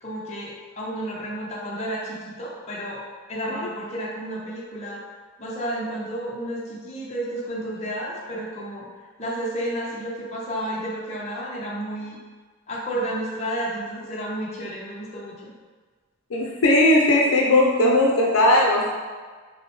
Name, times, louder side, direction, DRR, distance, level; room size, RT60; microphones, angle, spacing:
voice 1, 0.0-3.0 3.3-5.0 5.4-8.9 9.2-12.2 12.7-15.5, right 1 dB, 30° left, -5 dB, 0.7 m, -31 dB
voice 2, 16.3-18.9, left 1 dB, 75° left, -1 dB, 0.5 m, -18 dB
6.0 x 2.1 x 3.1 m, 1.5 s
head